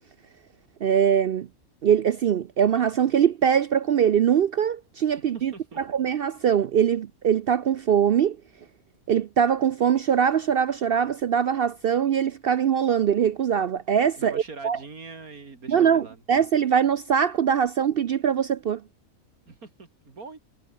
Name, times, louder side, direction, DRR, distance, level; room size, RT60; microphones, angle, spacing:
voice 1, 0.8-1.5 1.8-5.5 5.9-8.4 9.1-14.8 15.7-18.8, right 8 dB, 65° right, 0.6 m, -22 dB
voice 2, 5.3-5.8 14.2-16.2 19.5-20.4, right 4 dB, 80° right, 3.6 m, -42 dB
omnidirectional pair, 1.5 m